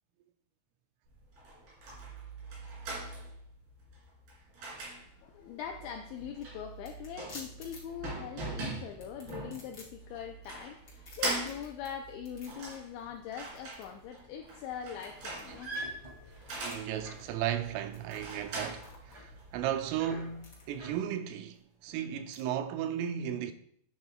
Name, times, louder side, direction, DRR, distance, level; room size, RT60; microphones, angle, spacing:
sound 1, 1.1-19.7, right 2 dB, 50° right, 4.6 m, -42 dB
voice 1, 5.1-15.7 16.1-16.9, left 8 dB, 85° left, 2.6 m, -42 dB
sound 2, 6.2-22.4, left 2 dB, 35° left, 1.8 m, -56 dB
sound 3, 15.2-21.0, right 1 dB, 30° right, 0.9 m, -47 dB
voice 2, 16.6-23.5, right 10 dB, 85° right, 3.2 m, -35 dB
11.5 x 9.5 x 2.3 m
omnidirectional pair, 5.9 m